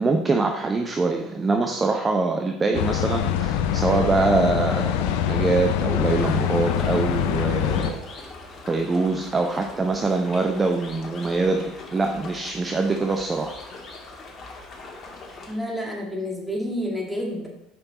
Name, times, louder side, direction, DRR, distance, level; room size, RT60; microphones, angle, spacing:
voice 1, 0.0-4.9 5.2-8.0 8.7-13.6, right 3 dB, 25° right, 4 dB, 0.6 m, -24 dB
sound 1, 2.7-7.9, left 10 dB, 70° left, 0.5 m, -24 dB
sound 2, 6.2-15.5, left 3 dB, 40° left, 1.6 m, -41 dB
voice 2, 15.5-17.5, equal, 10° right, -1 dB, 1.9 m, -29 dB
6.0 x 5.4 x 4.1 m, 0.86 s
hypercardioid pair, 70°, 0 cm